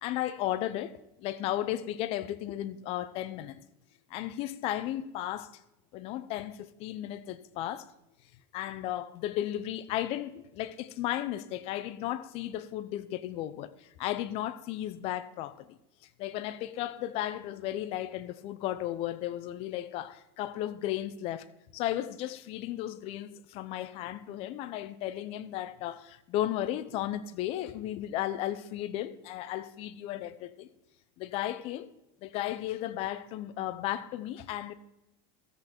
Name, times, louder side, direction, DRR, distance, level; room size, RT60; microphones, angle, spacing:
voice 1, 0.0-3.6 4.1-5.6 5.9-7.9 8.5-15.8 16.2-21.5 21.7-30.7 31.2-31.9 32.2-34.7, left 13 dB, 50° left, 0.7 m, -34 dB
14.0 x 7.9 x 4.4 m
supercardioid pair, 130°, 13 cm